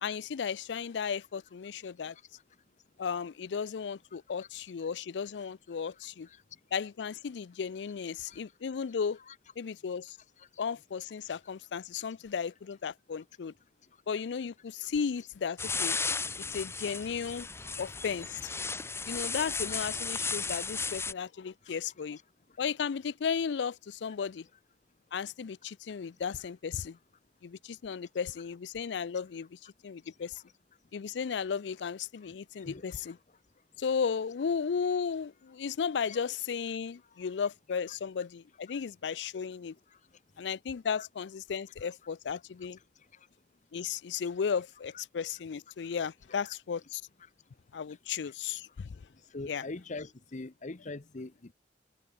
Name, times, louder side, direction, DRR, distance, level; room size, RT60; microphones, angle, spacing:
voice 1, 0.0-2.2 3.0-6.3 6.7-9.2 9.6-10.2 10.6-13.5 14.1-16.0 16.5-17.5 17.8-18.5 19.1-22.2 22.6-24.5 25.1-27.0 27.4-30.4 30.9-33.2 33.8-39.8 40.4-42.8 43.7-47.0 47.7-48.9 49.5-49.6, left 6 dB, 85° left, 0.4 m, -35 dB
sound 1, 15.6-21.1, left 4 dB, 15° left, 0.8 m, -35 dB
voice 2, 32.6-33.1 36.0-36.2 37.9-38.0 41.0-41.1 46.4-46.5 49.3-51.5, left 3 dB, 45° left, 0.9 m, -43 dB
head